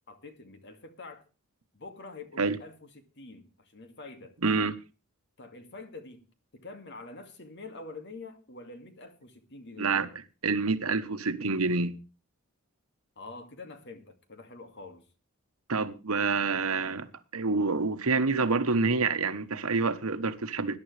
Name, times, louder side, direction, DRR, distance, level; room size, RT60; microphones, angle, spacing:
voice 1, 0.1-1.2 1.7-4.3 5.4-6.3 6.5-10.0 13.2-15.0, left 3 dB, 55° left, 2.2 m, -46 dB
voice 2, 4.4-4.7 9.8-10.1 10.4-12.0 15.7-20.8, right 4 dB, 85° right, 1.2 m, -27 dB
20.5 x 11.0 x 3.3 m
head